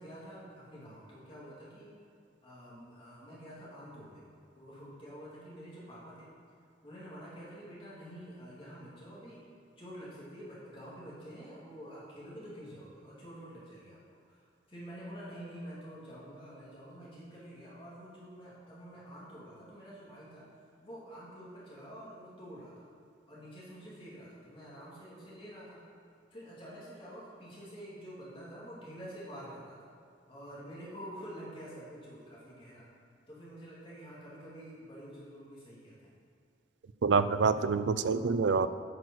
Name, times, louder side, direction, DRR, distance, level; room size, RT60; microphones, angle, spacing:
voice 1, 0.0-1.9 2.4-4.2 4.5-6.3 6.8-9.4 9.8-14.0 14.3-14.4 14.7-20.5 20.8-22.7 23.3-25.8 26.3-29.8 30.3-32.8 33.3-36.1, equal, 30° left, -8 dB, 2.7 m, -48 dB
voice 2, 37.0-38.7, right 5 dB, 80° right, 13 dB, 0.4 m, -26 dB
9.3 x 6.0 x 6.2 m, 2.4 s
head